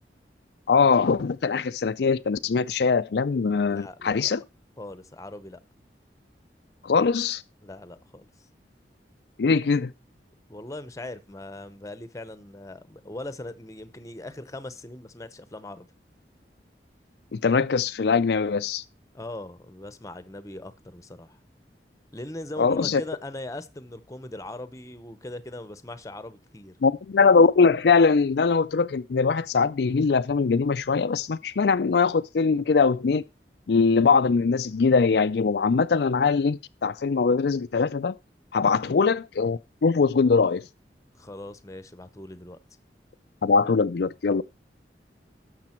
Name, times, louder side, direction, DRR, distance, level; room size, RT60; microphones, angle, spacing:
voice 1, 0.7-4.4 6.8-7.4 9.4-9.9 17.3-18.8 22.6-23.0 26.8-33.2 33.7-38.1 38.5-40.7 43.4-44.4, left 5 dB, 65° left, 0.4 m, -22 dB
voice 2, 3.7-4.3 4.8-5.6 7.6-8.3 10.5-15.9 19.1-21.4 22.1-26.7 38.7-38.9 41.2-42.6, left 1 dB, 20° left, 0.8 m, -40 dB
12.0 x 6.7 x 4.4 m
head